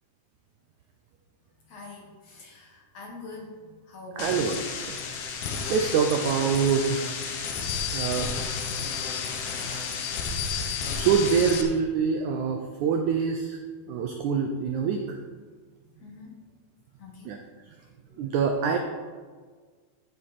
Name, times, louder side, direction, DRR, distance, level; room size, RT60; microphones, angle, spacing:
voice 1, 1.7-4.4 16.0-16.4 17.0-17.3 18.1-18.2, left 2 dB, 55° left, 0 dB, 2.1 m, -44 dB
sound 1, 4.2-11.6, left 6 dB, 85° left, 3.1 m, -31 dB
voice 2, 4.2-4.6 4.9-5.0 5.5-7.1 7.9-8.3 9.5-9.9 10.9-13.6 13.9-15.2 17.3-17.4 18.2-18.8, right 6 dB, 80° right, 4 dB, 1.7 m, -25 dB
13.5 x 7.7 x 4.2 m, 1.5 s
omnidirectional pair, 4.3 m